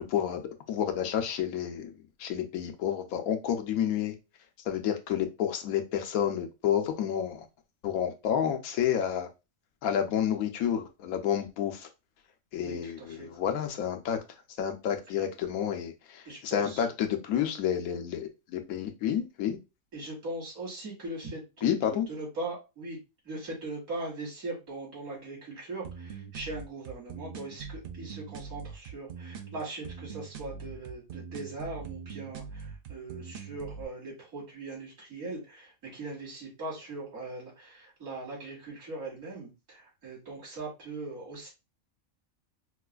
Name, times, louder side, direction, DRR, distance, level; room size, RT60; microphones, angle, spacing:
voice 1, 0.1-1.9 2.2-4.1 4.7-7.4 7.8-9.3 9.8-11.9 12.5-14.2 14.6-19.6 21.6-22.1, left 9 dB, 85° left, 1.1 m, -30 dB
voice 2, 12.6-13.3 16.2-16.8 19.9-23.0 23.2-41.5, right 2 dB, 85° right, 2.5 m, -40 dB
sound 1, 25.8-33.8, right 6 dB, 65° right, 0.5 m, -42 dB
4.6 x 2.4 x 2.3 m
omnidirectional pair, 1.4 m